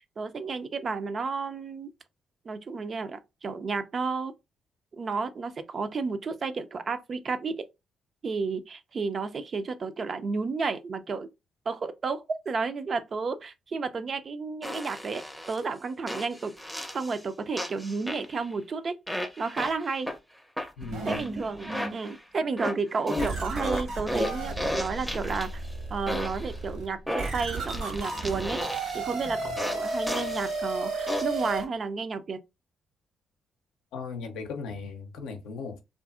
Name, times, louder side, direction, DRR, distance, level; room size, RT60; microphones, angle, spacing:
voice 1, 0.0-1.9 2.5-4.3 4.9-7.7 8.2-11.3 11.7-16.5 16.9-18.9 19.4-20.1 21.1-25.6 25.9-32.4, right 4 dB, 50° right, 0.4 m, -32 dB
sound 1, 14.6-15.6 16.1-17.2 17.6-18.5 19.1-20.2 20.6-22.2 22.6-25.7 26.1-26.5 27.1-29.1 29.6-30.5 31.1-31.5, equal, ahead, 0.5 m, -34 dB
voice 2, 20.8-21.2 33.9-35.8, left 4 dB, 80° left, 0.5 m, -37 dB
sound 2, 20.8-22.0 22.5-22.6 23.2-31.6, right 2 dB, 75° right, 1.1 m, -34 dB
2.6 x 2.5 x 2.4 m
hypercardioid pair, 50°, 0 cm